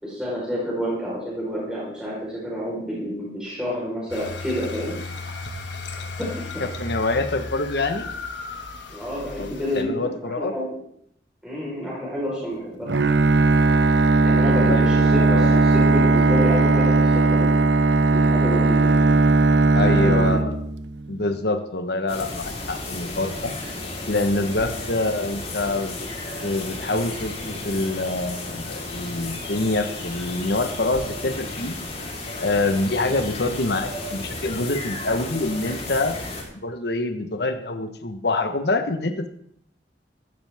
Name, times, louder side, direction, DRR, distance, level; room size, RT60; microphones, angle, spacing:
voice 1, 0.0-4.9 6.2-6.3 8.9-10.7 11.4-12.9 14.2-17.6 18.1-19.1 19.8-20.4, equal, 5° right, -7 dB, 4.5 m, -29 dB
sound 1, 4.1-9.8, left 3 dB, 80° left, 1.6 m, -35 dB
voice 2, 6.6-8.1 9.4-10.5 14.5-15.7 19.7-20.6 21.1-23.5 24.1-26.1 26.4-31.8 32.4-36.2 36.6-39.3, left 2 dB, 65° left, 7 dB, 1.3 m, -26 dB
Bowed string instrument, 12.9-21.1, right 3 dB, 75° right, 0.7 m, -18 dB
sound 2, 22.1-36.4, left 2 dB, 35° left, 3.9 m, -33 dB
15.0 x 12.0 x 3.6 m, 0.68 s
head